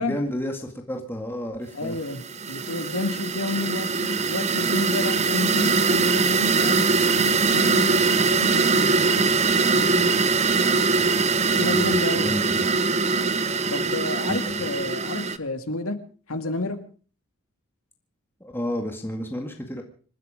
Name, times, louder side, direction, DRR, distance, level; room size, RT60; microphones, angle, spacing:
voice 1, 0.0-2.0 11.6-12.6 14.3-14.6 18.4-19.8, equal, 10° left, 2.1 m, -31 dB
voice 2, 1.7-9.3 9.7-10.3 11.5-12.3 13.7-16.0 16.3-16.8, left 2 dB, 80° left, 2.1 m, -30 dB
sound 1, 2.0-15.4, right 4 dB, 30° right, 0.8 m, -22 dB
27.0 x 10.0 x 5.1 m
head